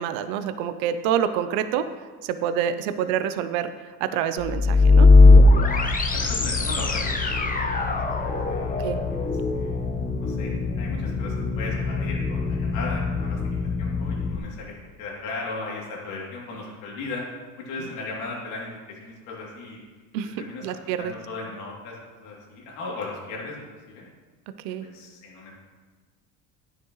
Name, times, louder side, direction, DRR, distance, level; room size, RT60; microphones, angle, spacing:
voice 1, 0.0-1.9 2.2-3.7 4.0-5.1 8.8-9.0 20.1-21.1 24.6-24.9, right 9 dB, 80° right, 11 dB, 0.7 m, -27 dB
sound 1, 4.4-14.4, left 3 dB, 20° left, 1.0 m, -20 dB
voice 2, 6.1-9.8 10.2-17.2 17.6-19.8 20.4-20.6 21.0-23.5 23.9-24.1 24.8-25.5, left 3 dB, 75° left, -4 dB, 3.1 m, -37 dB
9.9 x 9.8 x 3.2 m, 1.4 s
supercardioid pair, 100°, 41 cm